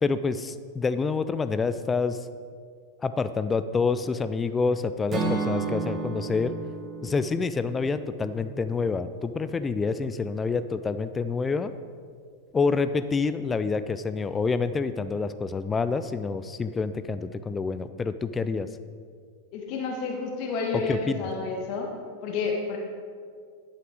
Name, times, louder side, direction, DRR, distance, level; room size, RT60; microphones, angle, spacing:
voice 1, 0.0-2.2 3.0-6.5 7.0-11.7 12.5-18.7 20.9-21.2, left 4 dB, 15° left, 12 dB, 0.3 m, -27 dB
Acoustic guitar / Strum, 5.1-9.2, right 4 dB, 25° right, 1.4 m, -33 dB
voice 2, 19.5-21.9 22.2-22.8, left 4 dB, 45° left, 1 dB, 1.1 m, -30 dB
11.0 x 5.7 x 4.9 m, 2.1 s
figure-of-eight pair, 90°, 0 cm